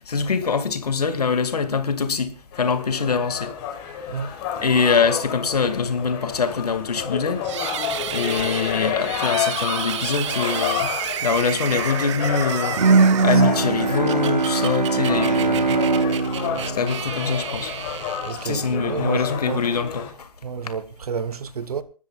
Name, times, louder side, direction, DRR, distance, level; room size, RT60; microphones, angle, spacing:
voice 1, 0.1-3.5 4.6-7.4 8.1-10.9 11.2-12.8 13.2-15.8 16.7-17.7 18.4-20.3, left 5 dB, 70° left, 2.3 m, -24 dB
sound 1, 2.5-20.1, left 8 dB, 35° left, 4.9 m, -30 dB
sound 2, 7.4-18.8, right 11 dB, 45° right, 1.2 m, -32 dB
Bowed string instrument, 12.8-17.8, right 4 dB, 85° right, 0.6 m, -21 dB
voice 2, 18.2-19.7 20.4-21.8, right 6 dB, 65° right, 1.3 m, -30 dB
28.0 x 13.0 x 2.4 m
figure-of-eight pair, 125°, 21 cm